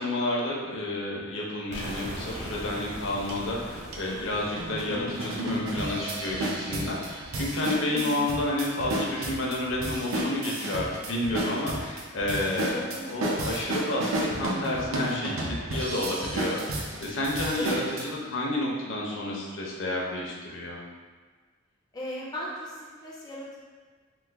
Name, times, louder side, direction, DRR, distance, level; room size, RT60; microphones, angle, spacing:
voice 1, 0.0-16.6 17.0-20.8, left 1 dB, 65° left, -3 dB, 0.6 m, -30 dB
sound 1, 1.7-7.6, right 1 dB, 35° right, 0.5 m, -41 dB
sound 2, 3.3-3.4 3.9-4.0 4.6-18.0, right 1 dB, 90° right, 0.5 m, -32 dB
voice 2, 7.9-8.3 12.6-13.1 17.6-17.8 21.9-23.6, left 1 dB, 20° left, -6 dB, 0.3 m, -37 dB
3.0 x 2.1 x 3.3 m, 1.5 s
head